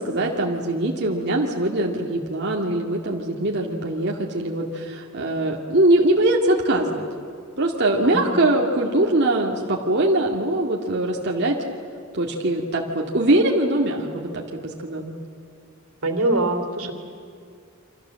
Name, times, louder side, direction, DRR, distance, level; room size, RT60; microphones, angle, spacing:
voice 1, 0.0-7.0 7.6-11.6 12.1-15.1, right 1 dB, 55° right, -1 dB, 2.2 m, -22 dB
voice 2, 16.0-16.9, right 2 dB, 85° right, 6 dB, 3.2 m, -23 dB
29.0 x 25.5 x 7.6 m, 2.3 s
head